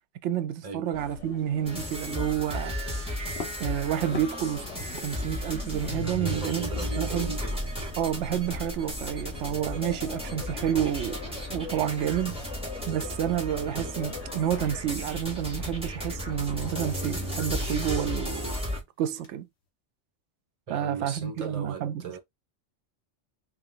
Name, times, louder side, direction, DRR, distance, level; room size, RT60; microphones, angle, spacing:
voice 1, 0.2-2.7 3.6-4.7 5.0-7.3 8.0-11.2 11.5-12.4 12.9-18.6 19.0-19.5 20.7-22.0, right 10 dB, 75° right, 0.9 m, -29 dB
sound 1, 0.9-14.8, left 5 dB, 85° left, 1.4 m, -45 dB
sound 2, 1.6-18.8, left 1 dB, 5° right, 1.6 m, -34 dB
sound 3, 3.4-14.3 14.6-15.0 15.4-19.7, left 4 dB, 60° left, 1.3 m, -47 dB
voice 2, 6.0-7.6 20.7-22.2, right 5 dB, 30° right, 1.0 m, -37 dB
3.0 x 3.0 x 3.7 m
omnidirectional pair, 1.2 m